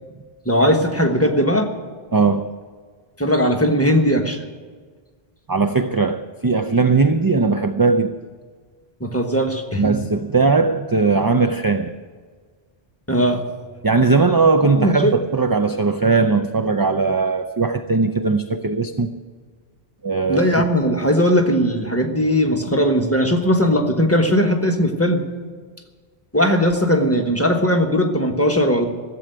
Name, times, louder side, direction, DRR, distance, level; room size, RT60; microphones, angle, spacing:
voice 1, 0.4-1.7 3.2-4.4 9.0-9.9 13.1-13.4 14.8-15.2 20.3-25.3 26.3-28.9, equal, 15° left, 1.2 m, -18 dB
voice 2, 2.1-2.5 5.5-8.1 9.8-11.9 13.8-19.1 20.0-20.4, right 4 dB, 30° right, 0.4 m, -19 dB
15.0 x 7.8 x 9.1 m
omnidirectional pair, 1.0 m